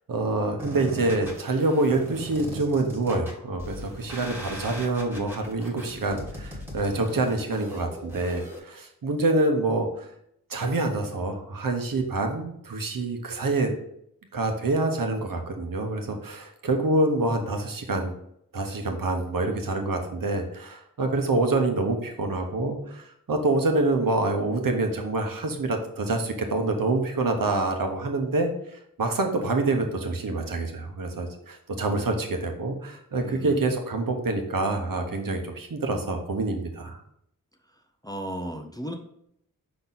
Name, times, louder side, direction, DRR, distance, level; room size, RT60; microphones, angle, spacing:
voice 1, 0.1-10.1 10.5-13.7 14.3-18.1 18.5-28.5 29.0-37.0, right 2 dB, 65° right, 4 dB, 1.0 m, -26 dB
sound 1, 0.6-8.6, equal, 5° right, 1.4 m, -39 dB
voice 2, 33.2-33.8 37.7-38.9, equal, 10° left, 3 dB, 0.6 m, -36 dB
5.7 x 4.2 x 3.9 m, 0.73 s
wide cardioid pair, 100°, 35 cm